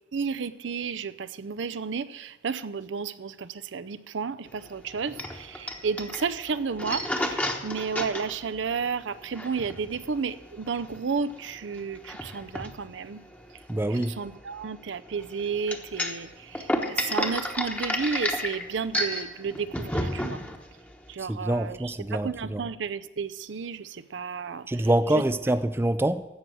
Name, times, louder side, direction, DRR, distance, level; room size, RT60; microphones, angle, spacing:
voice 1, 0.1-13.2 13.9-20.4 21.1-24.8 25.1-25.2, right 5 dB, 75° right, 0.5 m, -32 dB
sound 1, 4.5-21.1, left 1 dB, 10° left, 1.0 m, -32 dB
voice 2, 13.7-14.1 21.2-22.6 24.7-26.3, right 1 dB, 15° right, 0.4 m, -25 dB
15.5 x 6.2 x 7.7 m
head